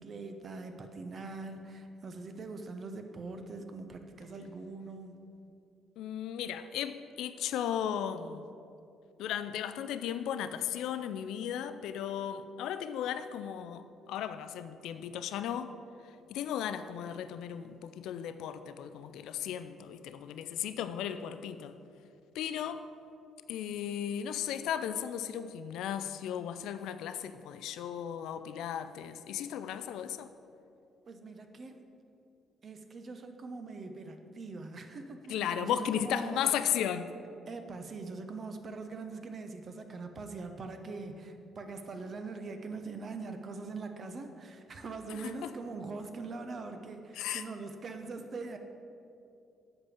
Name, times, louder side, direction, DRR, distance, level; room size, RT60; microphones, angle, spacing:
voice 1, 0.0-5.2 31.1-31.9 32.6-36.6 37.5-48.6, right 3 dB, 45° right, 6 dB, 0.9 m, -42 dB
voice 2, 6.0-8.4 9.2-13.8 14.1-15.7 16.3-21.7 22.3-22.8 23.5-30.3 35.3-37.1 45.1-45.3 47.2-47.4, left 9 dB, 65° left, 11 dB, 0.4 m, -35 dB
8.0 x 5.3 x 7.5 m, 2.6 s
figure-of-eight pair, 45°, 0 cm